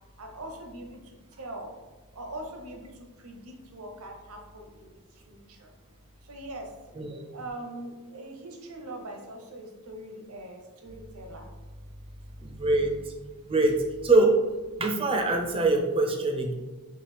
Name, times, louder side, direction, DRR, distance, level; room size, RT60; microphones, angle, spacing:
voice 1, 0.2-1.7 2.1-5.7 6.2-6.7 7.3-11.5, right 1 dB, 80° right, 3 dB, 0.8 m, -42 dB
voice 2, 7.0-7.3 12.4-13.1 13.4-13.8 14.0-14.3 14.8-16.5, right 2 dB, 25° right, 3 dB, 0.5 m, -24 dB
4.7 x 3.2 x 3.3 m, 1.2 s
head